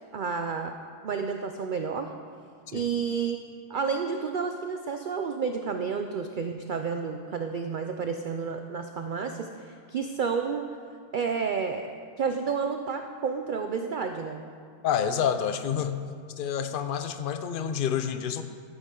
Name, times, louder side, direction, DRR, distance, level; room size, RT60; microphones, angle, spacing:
voice 1, 0.1-0.7 1.0-2.1 2.7-3.4 3.7-10.7 11.1-11.9 12.2-14.4, right 5 dB, 85° right, 5 dB, 0.4 m, -30 dB
voice 2, 14.8-16.0 16.4-18.4, left 8 dB, 60° left, 9 dB, 0.5 m, -28 dB
13.0 x 9.0 x 3.7 m, 2.1 s
omnidirectional pair, 1.5 m